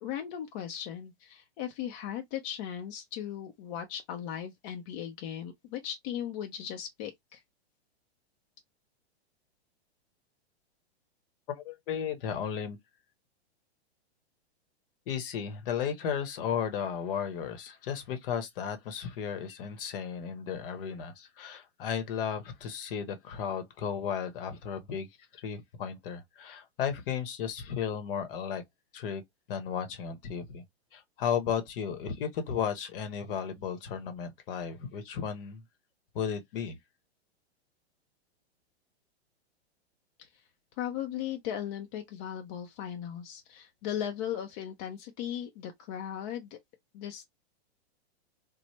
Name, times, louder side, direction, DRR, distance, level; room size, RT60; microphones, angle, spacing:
voice 1, 0.0-7.4 40.2-40.3 40.8-46.6 46.9-47.3, left 10 dB, 35° left, 0.5 m, -37 dB
voice 2, 11.5-12.8 15.1-25.1 25.3-28.6 28.9-29.2 29.5-30.6 30.9-35.6 36.1-36.8, left 7 dB, 55° left, 0.9 m, -34 dB
3.1 x 2.1 x 2.9 m
hypercardioid pair, 135°, 33 cm